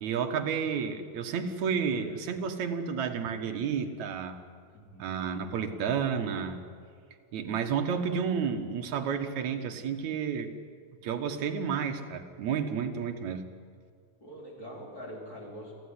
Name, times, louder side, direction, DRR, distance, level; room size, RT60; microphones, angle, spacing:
voice 1, 0.0-4.4 5.0-6.6 7.3-10.5 11.0-13.4, right 6 dB, 65° right, 5 dB, 2.5 m, -31 dB
voice 2, 4.7-5.2 14.2-15.7, equal, 25° left, -2 dB, 4.8 m, -44 dB
28.0 x 14.0 x 9.8 m, 2.1 s
omnidirectional pair, 3.9 m